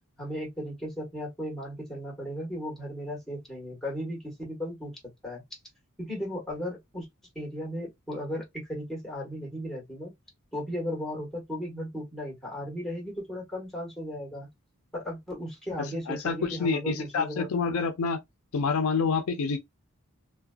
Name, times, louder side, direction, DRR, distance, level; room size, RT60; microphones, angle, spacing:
voice 1, 0.2-5.4 6.0-7.0 7.3-10.1 10.5-14.5 14.9-17.5, equal, ahead, 1.3 m, -36 dB
voice 2, 16.1-18.2 18.5-19.6, left 5 dB, 70° left, 0.4 m, -27 dB
2.4 x 2.2 x 2.3 m
head